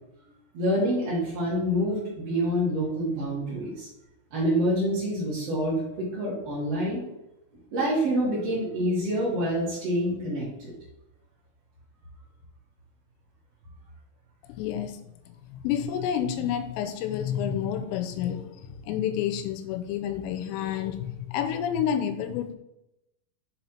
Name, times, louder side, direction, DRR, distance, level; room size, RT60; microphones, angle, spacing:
voice 1, 0.5-3.9 4.3-7.0 7.7-10.7, equal, 55° right, -7 dB, 1.7 m, -27 dB
voice 2, 14.6-15.0 15.5-22.6, left 9 dB, 85° left, 9 dB, 3.2 m, -29 dB
7.1 x 4.4 x 4.3 m, 0.89 s
omnidirectional pair, 5.9 m